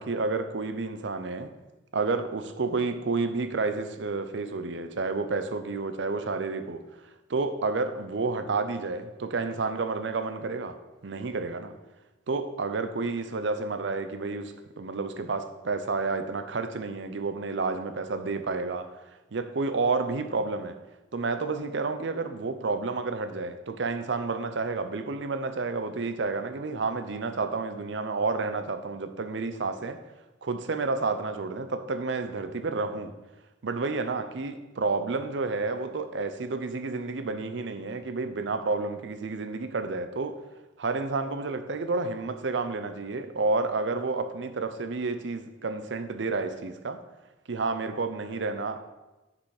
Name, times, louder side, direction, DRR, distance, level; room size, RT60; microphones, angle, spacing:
voice 1, 0.0-1.5 1.9-6.8 7.3-10.8 11.0-11.7 12.3-19.0 19.3-20.8 21.1-30.0 30.4-33.1 33.6-40.4 40.8-47.0 47.5-48.8, right 3 dB, 70° right, 9 dB, 0.6 m, -30 dB
6.8 x 5.1 x 4.8 m, 1.1 s
head